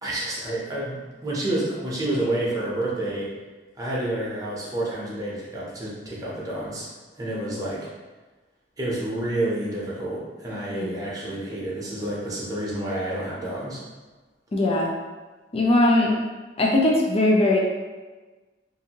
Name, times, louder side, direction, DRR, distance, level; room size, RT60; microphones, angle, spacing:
voice 1, 0.0-3.3 3.8-6.9 7.2-7.8 8.8-13.8, right 1 dB, 20° right, -6 dB, 0.7 m, -29 dB
voice 2, 14.5-14.9 15.5-16.1 16.6-17.6, left 1 dB, 30° left, -2 dB, 0.4 m, -20 dB
2.6 x 2.6 x 2.8 m, 1.3 s
head